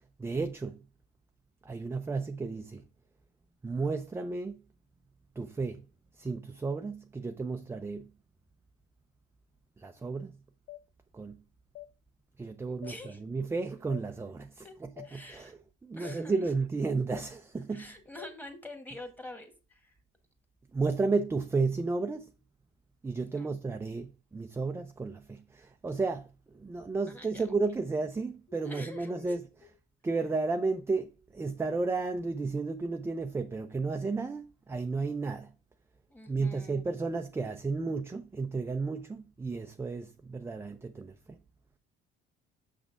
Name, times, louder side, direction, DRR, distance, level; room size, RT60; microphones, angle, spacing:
voice 1, 0.2-0.8 1.6-2.8 3.6-4.6 5.4-5.8 6.2-8.1 9.8-10.4 11.1-11.4 12.4-17.9 20.7-22.3 23.0-29.5 30.0-35.5 36.3-41.4, right 3 dB, 10° right, 0.4 m, -33 dB
sound 1, 10.7-10.8 11.7-11.9 12.8-13.0 13.9-14.0 15.0-15.1 16.0-16.2 17.1-17.3 18.2-18.3, left 15 dB, 55° left, 0.4 m, -46 dB
voice 2, 12.7-13.2 14.6-14.7 15.0-15.5 16.0-16.4 17.7-20.0 23.4-23.6 27.1-27.4 28.6-29.2 36.1-36.8, left 2 dB, 10° left, 1.6 m, -46 dB
6.6 x 5.9 x 3.5 m
cardioid pair, 125°, 21 cm